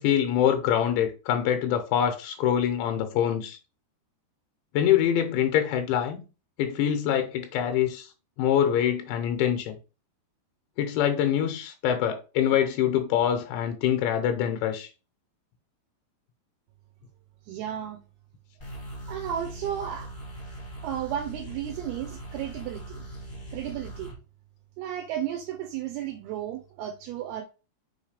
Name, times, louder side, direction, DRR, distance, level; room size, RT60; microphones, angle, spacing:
voice 1, 0.0-3.6 4.7-6.2 6.6-8.1 8.4-9.8 10.8-14.9, left 10 dB, 85° left, 3.1 m, -25 dB
voice 2, 17.5-18.0 19.1-20.1 20.8-23.0 23.5-24.1 24.8-27.4, right 10 dB, 80° right, 2.4 m, -33 dB
sound 1, 18.6-24.2, right 1 dB, 30° left, 0.9 m, -40 dB
6.5 x 3.1 x 4.9 m
omnidirectional pair, 5.2 m